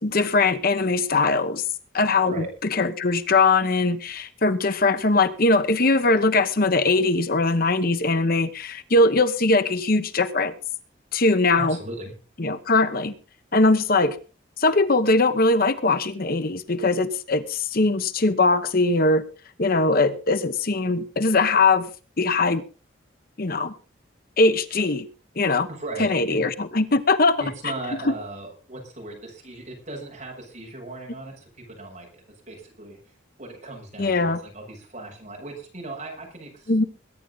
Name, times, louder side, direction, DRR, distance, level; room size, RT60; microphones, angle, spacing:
voice 1, 0.0-1.6 1.9-2.4 2.7-10.5 11.1-11.8 12.4-13.1 13.5-14.2 14.6-19.2 19.6-21.9 22.2-22.6 23.4-23.7 24.4-25.1 25.4-25.7 26.0-27.3 28.0-28.1 34.0-34.4 36.7-36.8, left 3 dB, 50° left, 1.0 m, -21 dB
voice 2, 11.6-12.1 25.7-26.5 27.4-33.0 33.4-36.7, right 2 dB, 40° right, 6.8 m, -37 dB
22.0 x 10.0 x 4.0 m
head